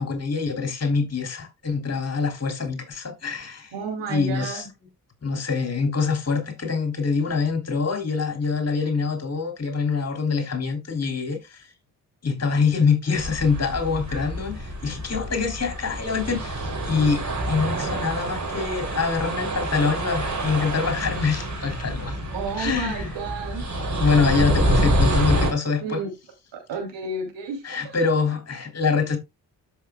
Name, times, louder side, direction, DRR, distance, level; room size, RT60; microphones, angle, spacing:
voice 1, 0.0-3.7 4.1-4.7 5.2-11.7 12.2-22.2 22.5-23.2 23.7-26.0 27.6-29.2, left 5 dB, 30° left, 3.3 m, -25 dB
voice 2, 3.7-4.7 22.3-23.7 25.8-26.1 26.5-28.0, right 4 dB, 65° right, 3.2 m, -31 dB
sound 1, 13.1-25.5, right 1 dB, 35° right, 4.3 m, -27 dB
13.0 x 6.0 x 2.3 m
hypercardioid pair, 40°, 48 cm